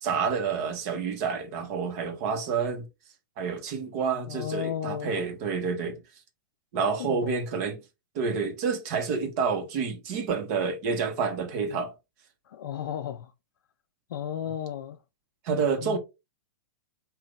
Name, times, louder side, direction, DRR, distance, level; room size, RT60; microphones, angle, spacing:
voice 1, 0.0-2.8 3.4-6.0 6.7-7.8 8.1-11.9 15.4-16.0, right 5 dB, 50° right, 1.3 m, -28 dB
voice 2, 4.3-5.3 7.0-7.4 12.5-13.3 14.1-15.0 15.8-16.0, left 10 dB, 70° left, 0.5 m, -34 dB
3.8 x 2.7 x 3.5 m
hypercardioid pair, 120°, 11 cm